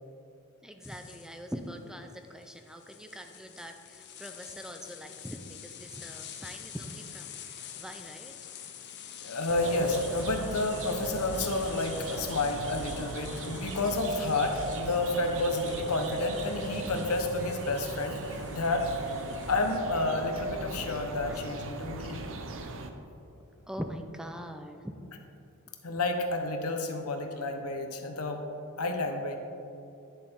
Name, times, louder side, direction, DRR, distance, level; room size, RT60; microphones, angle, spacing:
voice 1, 0.6-8.3 21.3-21.4 23.4-24.9, equal, 5° right, 6 dB, 0.4 m, -43 dB
sound 1, 0.8-19.8, left 9 dB, 50° left, 0.7 m, -47 dB
voice 2, 9.2-19.2 19.5-22.3 25.8-28.4 28.8-29.4, left 2 dB, 90° left, 5 dB, 0.9 m, -30 dB
sound 2, 9.5-22.9, right 3 dB, 60° right, 0.7 m, -39 dB
10.0 x 6.9 x 3.6 m, 2.8 s
head